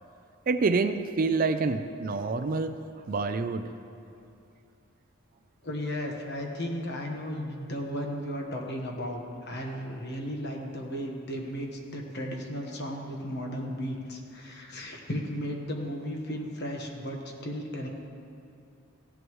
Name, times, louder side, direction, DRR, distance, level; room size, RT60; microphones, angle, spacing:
voice 1, 0.5-2.8 3.1-3.7, right 4 dB, 40° right, 10 dB, 0.4 m, -27 dB
voice 2, 5.6-17.9, equal, 50° left, 1 dB, 1.3 m, -35 dB
15.5 x 11.0 x 3.1 m, 2.7 s
head